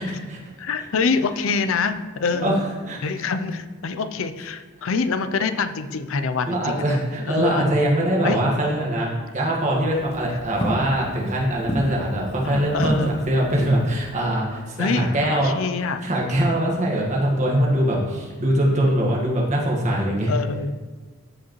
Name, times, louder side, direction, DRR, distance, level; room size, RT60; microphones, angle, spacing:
voice 1, 0.0-0.4 2.4-2.6 2.9-3.3 6.4-15.5 15.8-20.3, right 1 dB, 35° right, -3 dB, 1.6 m, -22 dB
voice 2, 0.6-2.6 3.0-7.0 7.3-7.7 8.2-8.4 12.4-13.1 14.8-16.1 19.8-20.7, left 4 dB, 70° left, 10 dB, 0.5 m, -25 dB
Walk footsteps, 9.8-14.3, equal, 30° left, 1.1 m, -32 dB
14.0 x 4.9 x 3.1 m, 1.3 s
head